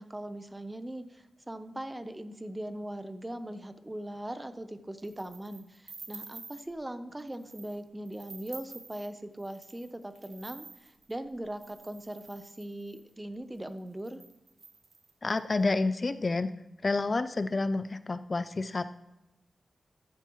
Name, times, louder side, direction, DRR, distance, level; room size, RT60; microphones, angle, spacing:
voice 1, 0.0-14.2, right 1 dB, 15° right, 10 dB, 0.7 m, -40 dB
sound 1, 5.0-6.7 7.2-7.8 8.1-13.1 13.7-13.8 14.0-15.5, right 4 dB, 60° right, 1.1 m, -50 dB
voice 2, 15.2-16.5 16.8-18.9, left 3 dB, 35° left, 12 dB, 0.4 m, -29 dB
14.0 x 9.2 x 3.1 m, 0.97 s
wide cardioid pair, 95°, 0 cm